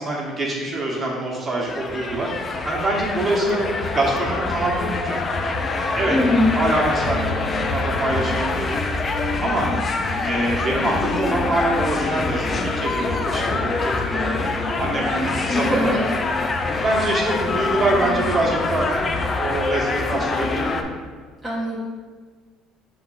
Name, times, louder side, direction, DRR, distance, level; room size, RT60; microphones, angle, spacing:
voice 1, 0.0-2.3 2.6-5.2 5.9-6.2 6.5-8.9 9.4-9.7 10.2-14.4 14.8-16.0 16.7-20.9, right 2 dB, 25° right, -3 dB, 1.4 m, -25 dB
sound 1, 1.7-20.8, left 3 dB, 25° left, 0.5 m, -25 dB
voice 2, 6.1-6.5 15.5-16.0 21.4-21.8, left 1 dB, 5° right, -7 dB, 0.9 m, -21 dB
6.6 x 3.9 x 3.9 m, 1.5 s
cardioid pair, 135°, 0 cm